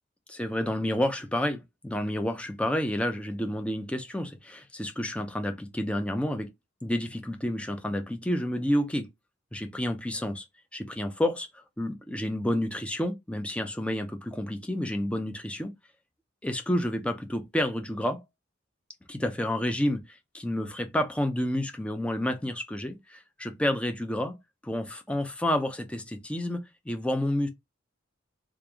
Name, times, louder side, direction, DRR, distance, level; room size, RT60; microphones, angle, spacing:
voice 1, 0.3-6.5 6.8-9.1 9.5-10.4 10.7-15.7 16.4-18.2 19.1-24.4 24.6-27.5, left 1 dB, 5° left, 0.5 m, -30 dB
3.2 x 2.5 x 3.4 m
head